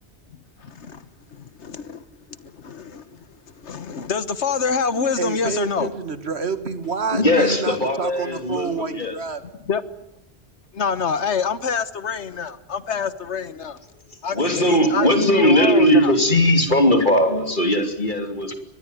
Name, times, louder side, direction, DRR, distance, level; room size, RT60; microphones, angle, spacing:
voice 1, 0.6-1.0 1.3-2.0 2.4-3.0 3.6-5.9 9.7-9.8 10.7-13.8 14.2-14.4 14.6-15.1 15.3-16.1, left 6 dB, 80° left, 14 dB, 1.5 m, -26 dB
voice 2, 5.2-9.4, right 4 dB, 70° right, 11 dB, 2.1 m, -28 dB
voice 3, 7.1-9.1 14.3-18.5, equal, 45° left, 6 dB, 3.3 m, -19 dB
24.5 x 20.5 x 9.3 m, 0.87 s
omnidirectional pair, 1.1 m